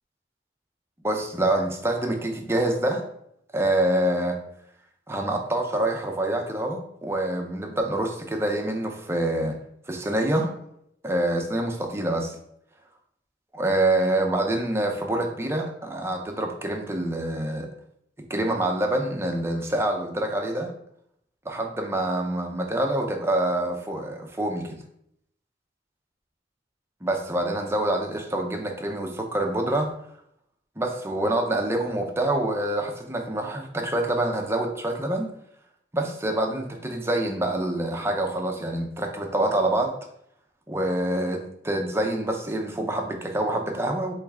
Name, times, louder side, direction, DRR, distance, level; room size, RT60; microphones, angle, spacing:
voice 1, 1.0-3.0 3.5-4.4 5.1-9.5 9.9-10.5 11.0-12.4 13.5-17.7 18.3-20.7 21.5-24.8 27.0-29.9 30.8-35.3 35.9-40.0 40.7-44.1, right 1 dB, 15° right, 2 dB, 0.5 m, -26 dB
4.5 x 3.1 x 3.5 m, 0.73 s
head